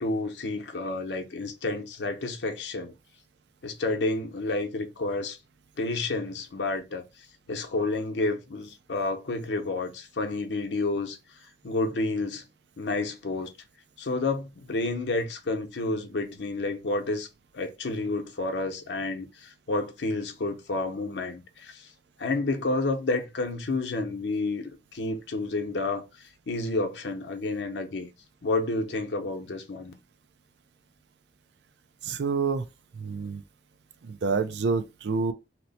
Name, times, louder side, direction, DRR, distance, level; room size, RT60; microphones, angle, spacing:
voice 1, 0.0-2.9 3.6-5.4 5.8-7.0 7.5-11.2 11.6-12.4 12.8-13.5 14.0-17.3 17.5-21.9 22.2-26.1 26.5-28.1 28.4-29.9, left 2 dB, 80° left, 0.7 m, -30 dB
voice 2, 32.0-32.7 33.0-33.4 34.0-35.3, right 4 dB, 75° right, 0.4 m, -28 dB
2.9 x 2.1 x 4.0 m
head